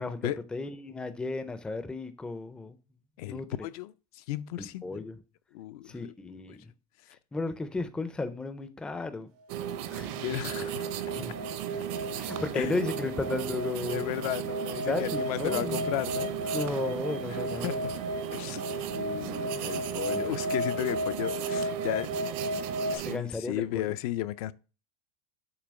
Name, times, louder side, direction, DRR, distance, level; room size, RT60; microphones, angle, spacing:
voice 1, 0.0-2.8 3.3-3.7 4.6-5.2 5.9-6.6 7.3-9.3 9.9-10.1 11.1-11.3 12.2-14.0 14.9-15.9 16.5-17.8 20.1-20.3 23.0-23.8, left 3 dB, 5° left, 0.4 m, -34 dB
voice 2, 3.2-5.0 5.5-6.1 6.5-6.6 10.2-10.9 12.5-12.8 13.9-16.6 17.3-17.4 17.6-17.8 18.3-18.6 18.9-22.1 22.9-24.5, left 15 dB, 70° left, 0.4 m, -34 dB
sound 1, 9.5-23.2, right 10 dB, 60° right, 0.7 m, -36 dB
sound 2, 9.6-23.0, equal, 85° right, 0.9 m, -35 dB
6.9 x 2.9 x 5.1 m
supercardioid pair, 150°, 20 cm